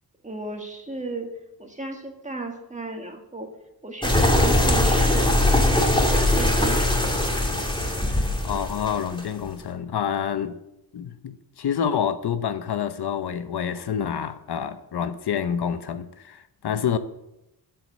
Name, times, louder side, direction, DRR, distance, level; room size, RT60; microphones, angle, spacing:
voice 1, 0.2-1.3 1.6-3.5 3.8-5.5 5.9-7.0, right 2 dB, 20° right, 1.7 m, -34 dB
sound 1, 4.0-9.5, left 1 dB, 10° left, 2.5 m, -21 dB
voice 2, 8.1-10.6 10.9-17.0, left 8 dB, 75° left, 0.9 m, -28 dB
12.5 x 7.9 x 7.4 m
wide cardioid pair, 130°, 40 cm